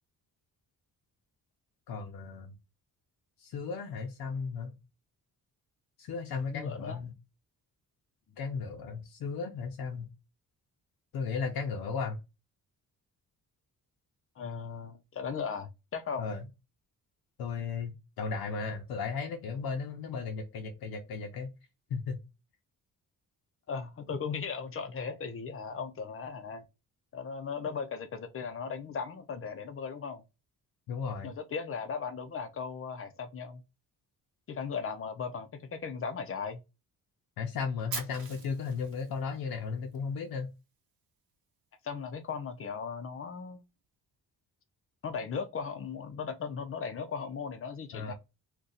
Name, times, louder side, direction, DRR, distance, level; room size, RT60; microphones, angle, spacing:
voice 1, 1.9-2.5 3.4-4.7 6.0-7.1 8.4-10.1 11.1-12.2 16.2-16.4 17.4-21.5 21.9-22.2 30.9-31.3 37.4-40.5 47.9-48.1, left 5 dB, 85° left, 0.6 m, -35 dB
voice 2, 6.5-7.0 14.4-16.3 23.7-26.6 27.1-30.2 31.2-33.6 34.5-36.6 41.8-43.6 45.0-48.1, left 5 dB, 40° left, 0.4 m, -37 dB
Fire, 37.9-40.0, right 5 dB, 75° right, 0.9 m, -42 dB
2.5 x 2.2 x 3.9 m
wide cardioid pair, 150°, 36 cm